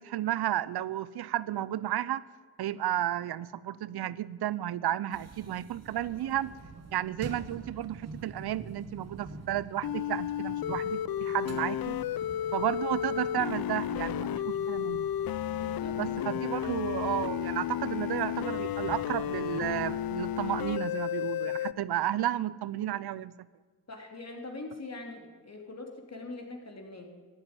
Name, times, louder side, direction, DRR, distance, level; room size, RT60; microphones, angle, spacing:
voice 1, 0.0-2.2 2.6-6.5 6.9-12.0 12.5-15.1 16.0-23.3, right 12 dB, 55° right, 19 dB, 0.7 m, -32 dB
sound 1, 5.1-20.0, right 3 dB, 35° right, 1.8 m, -47 dB
sound 2, 9.8-21.7, left 10 dB, 50° left, 0.6 m, -32 dB
voice 2, 15.5-16.3 23.9-27.1, left 2 dB, 35° left, 2 dB, 3.2 m, -43 dB
13.5 x 8.9 x 8.9 m, 1.4 s
supercardioid pair, 50°, 45 cm